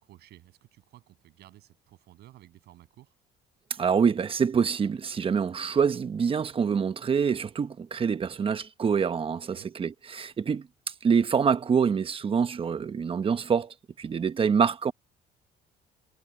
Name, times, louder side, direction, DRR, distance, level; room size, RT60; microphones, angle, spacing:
voice 1, 0.0-3.1 9.5-9.7, right 15 dB, 75° right, 7.8 m, -54 dB
voice 2, 3.8-10.6 11.0-14.9, right 6 dB, 35° right, 1.0 m, -26 dB
cardioid pair, 110°, 17 cm